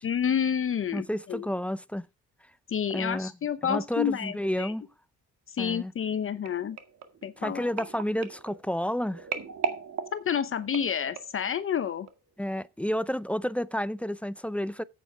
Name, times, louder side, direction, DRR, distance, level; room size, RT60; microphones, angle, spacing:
voice 1, 0.0-1.5 2.7-4.7 5.5-6.8 7.2-7.7 10.1-12.1, left 8 dB, 45° left, 0.7 m, -29 dB
voice 2, 0.9-2.1 2.9-3.3 3.6-4.8 5.6-5.9 7.4-9.3 12.4-14.8, equal, 5° left, 0.5 m, -30 dB
sound 1, 6.5-11.5 12.1-12.3 12.6-12.7, right 6 dB, 60° right, 1.9 m, -37 dB
8.5 x 8.2 x 4.8 m
cardioid pair, 90°, 30 cm